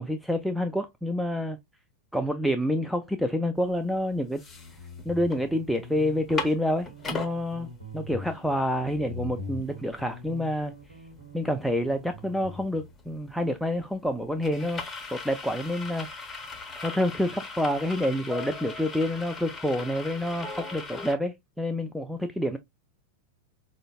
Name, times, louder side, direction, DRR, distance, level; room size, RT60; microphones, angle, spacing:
voice 1, 0.0-1.6 2.1-4.4 5.1-7.7 7.9-10.7 11.3-14.8 15.1-16.4 16.8-22.6, left 1 dB, ahead, 0.3 m, -28 dB
sound 1, 3.7-3.8 4.2-5.4 5.7-5.8 6.1-7.3 7.9-8.0 8.3-21.1, left 3 dB, 15° left, 0.8 m, -39 dB
Guitar, 4.5-12.9, left 2 dB, 75° right, 1.2 m, -43 dB
4.9 x 2.2 x 2.3 m
figure-of-eight pair, 90°, 0 cm